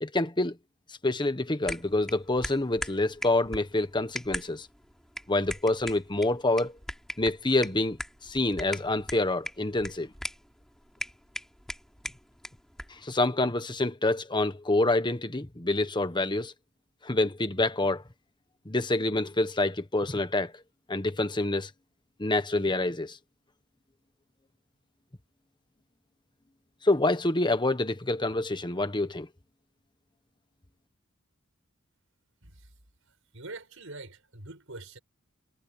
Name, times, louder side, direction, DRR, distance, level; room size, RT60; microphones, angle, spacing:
voice 1, 0.0-0.6 1.0-4.7 5.3-6.7 7.2-10.1 12.9-16.5 17.0-18.0 18.6-20.5 20.9-21.7 22.2-23.2 26.8-29.3, left 2 dB, 20° left, 1.4 m, -27 dB
sound 1, 1.6-13.0, equal, ahead, 4.1 m, -41 dB
voice 2, 32.4-32.7 33.0-35.0, right 2 dB, 65° right, 8.0 m, -45 dB
head